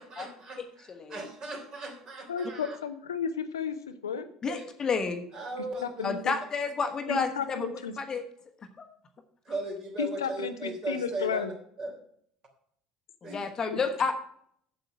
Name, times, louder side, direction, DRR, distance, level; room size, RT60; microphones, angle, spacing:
voice 1, 0.0-2.8 4.5-4.6 5.3-6.1 9.5-11.5 11.8-11.9 13.2-13.4, right 2 dB, 40° right, 2 dB, 3.3 m, -37 dB
voice 2, 0.6-1.2 4.4-5.2 6.0-7.7 8.0-8.2 8.8-8.9 13.2-14.1, left 5 dB, 30° left, 7 dB, 1.1 m, -30 dB
voice 3, 2.3-4.3 5.8-6.3 7.1-7.9 10.0-11.5 13.6-13.8, left 6 dB, 75° left, 10 dB, 0.6 m, -33 dB
7.8 x 7.6 x 6.1 m, 0.66 s
figure-of-eight pair, 65°, 2 cm